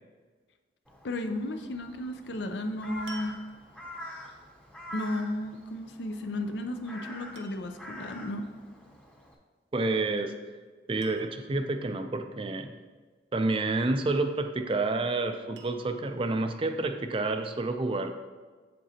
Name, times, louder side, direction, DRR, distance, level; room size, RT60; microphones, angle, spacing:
Crow, 0.9-9.4, left 1 dB, 5° left, 0.8 m, -46 dB
voice 1, 1.0-3.4 4.9-8.5, left 1 dB, 75° left, 6 dB, 0.6 m, -34 dB
sound 1, 2.1-2.3 3.1-4.0 6.4-6.7 7.3-7.9 9.8-10.2 10.5-10.6 11.0-11.7 14.0-14.6 15.6-16.2 16.9-17.0, right 3 dB, 80° right, 0.8 m, -52 dB
voice 2, 9.7-10.3 10.9-12.7 13.3-18.1, right 2 dB, 30° right, 7 dB, 0.4 m, -29 dB
7.9 x 7.5 x 2.8 m, 1.4 s
head